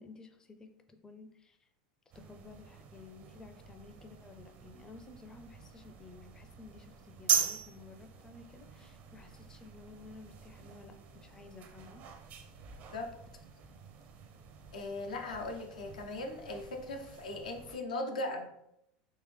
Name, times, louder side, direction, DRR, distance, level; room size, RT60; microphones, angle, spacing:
voice 1, 0.0-1.7 2.1-12.0, left 3 dB, 15° left, 6 dB, 0.4 m, -53 dB
sound 1, 2.1-17.8, right 8 dB, 45° right, 0.5 m, -41 dB
voice 2, 14.7-18.5, left 2 dB, 90° left, 3 dB, 0.6 m, -38 dB
3.6 x 2.9 x 3.2 m, 0.81 s
hypercardioid pair, 100°, 4 cm